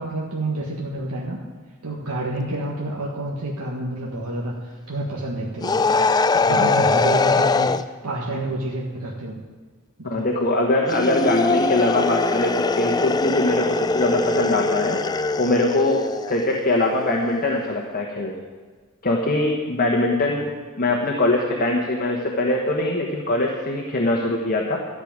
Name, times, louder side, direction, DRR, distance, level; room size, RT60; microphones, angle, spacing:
voice 1, 0.0-1.4 1.8-6.1 6.4-7.7 8.0-9.4 10.0-10.3 20.3-20.4, right 1 dB, 85° right, -3 dB, 1.7 m, -29 dB
sound 1, 5.6-7.8 10.8-16.4, left 3 dB, 20° left, 0.3 m, -21 dB
voice 2, 6.5-6.8 10.0-15.0 15.4-18.4 19.0-20.5 20.8-24.8, left 2 dB, 40° left, -1 dB, 1.4 m, -22 dB
13.0 x 6.6 x 8.9 m, 1.4 s
head